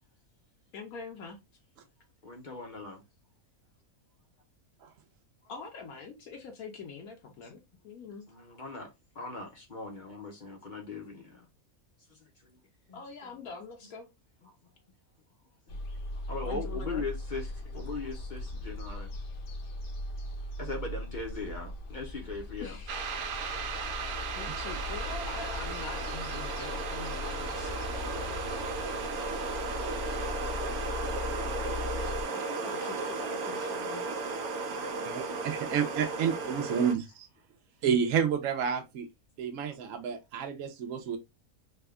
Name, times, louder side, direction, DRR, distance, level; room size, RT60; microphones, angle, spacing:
voice 1, 0.7-1.4 5.5-8.3 12.9-14.1 16.4-17.0 22.6-23.0 24.4-28.4 30.5-30.7 32.3-34.2, left 5 dB, 80° left, 1.2 m, -44 dB
voice 2, 2.2-3.0 5.4-5.5 7.4-7.5 8.3-11.5 12.1-12.6 12.9-13.4 13.8-13.9 14.4-14.6 15.7-15.8 16.1-19.1 20.6-22.8 37.0-37.1, left 3 dB, 45° left, 0.6 m, -40 dB
sound 1, 15.7-32.2, left 2 dB, 60° left, 0.9 m, -39 dB
sound 2, 22.9-37.0, right 4 dB, 90° right, 1.1 m, -35 dB
voice 3, 35.0-37.3 37.8-39.1 39.4-41.2, right 7 dB, 70° right, 0.9 m, -30 dB
3.4 x 2.2 x 3.4 m
omnidirectional pair, 1.5 m